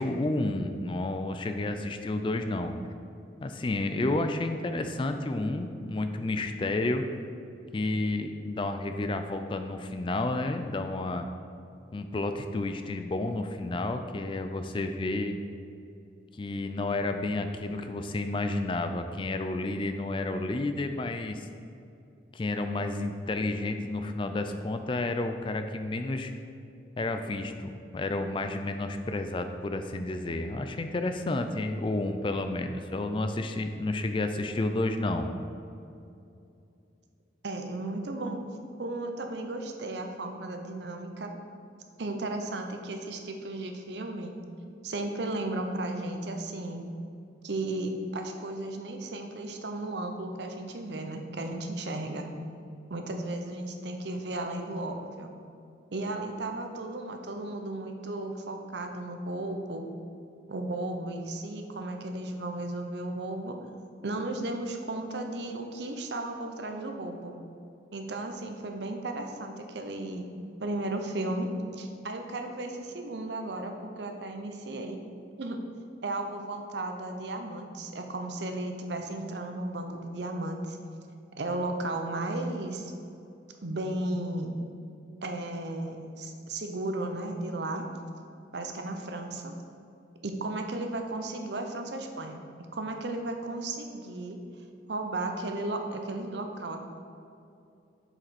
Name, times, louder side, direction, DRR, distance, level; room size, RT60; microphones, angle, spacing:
voice 1, 0.0-2.7 3.4-7.0 7.7-11.3 11.9-15.4 16.3-21.5 22.3-26.3 27.0-35.3, left 2 dB, 30° left, 7 dB, 0.3 m, -31 dB
voice 2, 37.4-38.4 38.8-41.3 42.0-44.3 44.8-46.8 47.4-52.3 52.9-55.3 55.9-59.8 60.5-63.6 64.0-67.3 67.9-70.3 70.6-75.0 75.4-75.6 76.0-80.8 81.4-82.9 83.6-84.6 85.2-87.9 88.5-89.5 90.2-92.5 92.7-94.4 94.9-96.8, right 2 dB, 70° right, 4 dB, 0.7 m, -34 dB
7.7 x 4.9 x 4.3 m, 2.6 s
head